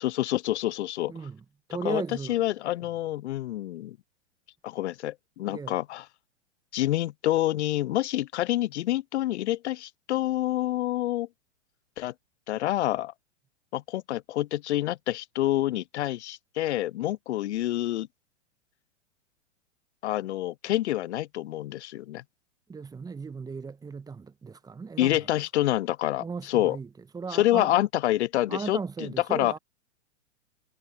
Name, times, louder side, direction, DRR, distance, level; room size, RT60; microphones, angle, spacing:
voice 1, 0.0-1.1 1.8-2.0 2.3-4.0 4.6-6.0 6.7-11.3 12.0-12.1 12.5-13.1 13.7-18.1 20.0-22.2 25.0-26.8 27.3-29.5, left 14 dB, 65° left, 0.5 m, -27 dB
voice 2, 1.1-1.4 1.7-2.4 5.5-5.8 22.7-25.3 26.2-27.7 28.5-29.6, right 5 dB, 10° right, 1.3 m, -36 dB
hypercardioid pair, 110°, 37 cm